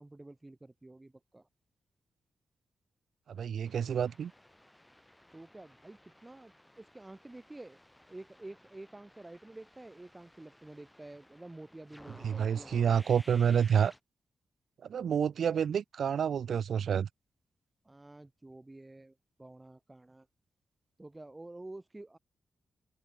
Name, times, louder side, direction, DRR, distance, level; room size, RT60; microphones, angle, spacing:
voice 1, 0.0-1.5 5.3-7.8 8.1-13.0 17.8-20.3 21.0-22.2, right 2 dB, 10° right, 4.3 m, -50 dB
voice 2, 3.4-4.3 12.2-13.9 14.9-17.1, right 8 dB, 60° right, 0.4 m, -28 dB
sound 1, 3.6-14.0, left 1 dB, 5° left, 2.1 m, -57 dB
open air
wide cardioid pair, 165°, 0 cm